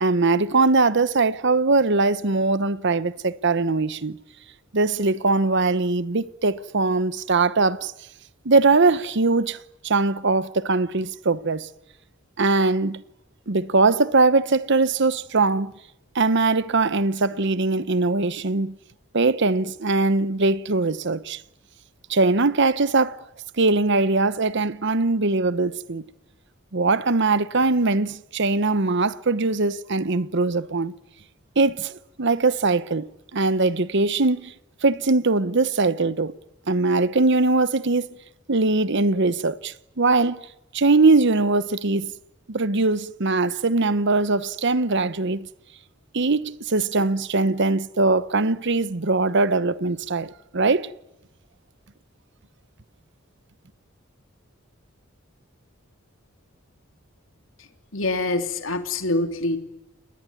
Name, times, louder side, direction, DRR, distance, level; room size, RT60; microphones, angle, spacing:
voice 1, 0.0-4.2 4.7-7.9 8.4-9.6 9.8-11.7 12.4-13.0 13.5-15.7 16.1-18.8 19.1-21.4 22.1-23.2 23.6-26.0 26.7-30.9 31.6-34.5 34.8-36.3 36.7-38.1 38.5-40.4 40.7-42.1 42.5-45.5 46.1-50.9, right 3 dB, 60° right, 1.0 m, -21 dB
voice 2, 57.9-59.6, left 2 dB, 70° left, 3.2 m, -25 dB
30.0 x 20.5 x 9.8 m
head